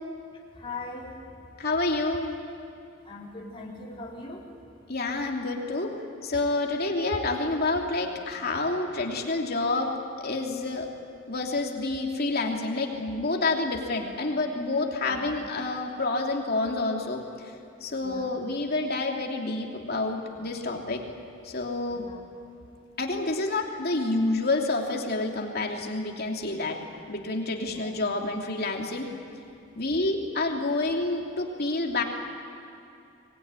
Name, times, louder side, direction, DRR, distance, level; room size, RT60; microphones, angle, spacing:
voice 1, 0.5-1.1 3.1-4.4 15.1-15.2 18.0-18.3 21.9-22.2 27.7-27.9, left 3 dB, 25° left, -3 dB, 4.2 m, -40 dB
voice 2, 1.6-2.3 4.9-5.9 6.2-9.9 10.2-10.9 11.3-17.2 17.8-21.0 21.4-22.1 23.0-26.8 27.1-29.1 29.8-32.0, left 2 dB, 50° left, 1 dB, 2.9 m, -28 dB
24.0 x 20.0 x 9.7 m, 2.6 s
head